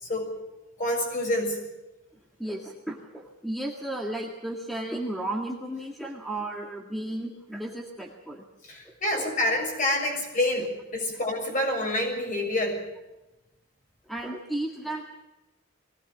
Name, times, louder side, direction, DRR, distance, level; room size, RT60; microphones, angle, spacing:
voice 1, 0.8-1.6 8.7-12.8, left 1 dB, 40° left, 1 dB, 6.6 m, -27 dB
voice 2, 2.4-8.4 9.2-9.3 14.1-15.0, right 1 dB, ahead, 1 dB, 1.9 m, -34 dB
21.5 x 18.0 x 7.3 m, 0.99 s
head